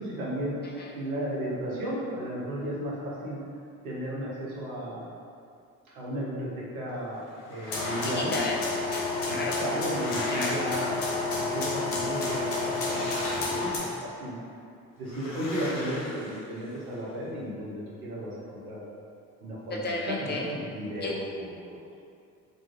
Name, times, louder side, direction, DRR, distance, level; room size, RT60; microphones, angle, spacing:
voice 1, 0.0-3.4 3.8-5.1 5.9-8.4 9.3-14.4 15.0-18.8 19.4-21.9, equal, 90° right, -6 dB, 0.6 m, -34 dB
sound 1, 7.3-8.5 9.3-11.5 12.6-14.0 15.0-16.9, left 1 dB, 50° left, 0.8 m, -40 dB
sound 2, 7.7-13.8, left 3 dB, 80° left, 0.7 m, -30 dB
voice 2, 8.1-9.5 10.3-10.5 19.8-20.4 21.0-21.1, left 2 dB, 25° left, -2 dB, 0.3 m, -33 dB
2.3 x 2.3 x 2.9 m, 2.4 s
hypercardioid pair, 50°, 43 cm